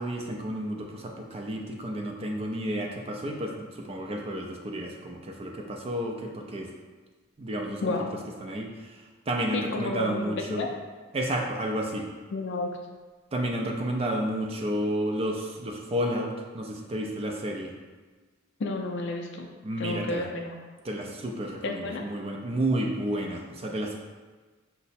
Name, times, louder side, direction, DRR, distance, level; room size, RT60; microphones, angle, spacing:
voice 1, 0.0-6.7 7.4-8.0 8.4-10.7 11.1-12.1 13.3-17.7 19.6-20.3 20.8-24.0, right 1 dB, 30° right, 1 dB, 0.4 m, -31 dB
voice 2, 9.5-10.7 12.3-12.7 18.6-19.5 19.8-20.5 21.6-22.0, left 2 dB, 60° left, 2 dB, 0.4 m, -31 dB
5.4 x 2.0 x 4.1 m, 1.4 s
head